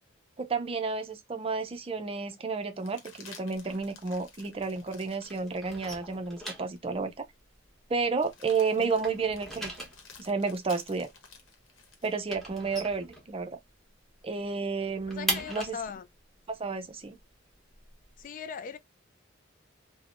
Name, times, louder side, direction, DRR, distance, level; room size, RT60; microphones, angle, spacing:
voice 1, 0.4-7.3 7.9-9.8 10.2-11.1 12.0-13.6 14.2-15.8 16.5-17.2, right 4 dB, 30° right, 0.5 m, -31 dB
sound 1, 2.7-6.2 6.8-6.9 8.1-12.2 14.4-15.3, left 5 dB, 85° left, 0.9 m, -53 dB
sound 2, 3.6-5.0 5.2-8.5 8.8-13.8 14.1-14.2 14.5-18.2, right 1 dB, ahead, 1.0 m, -39 dB
voice 2, 15.1-16.1 18.2-18.8, left 6 dB, 45° left, 0.3 m, -39 dB
3.3 x 2.1 x 2.4 m
head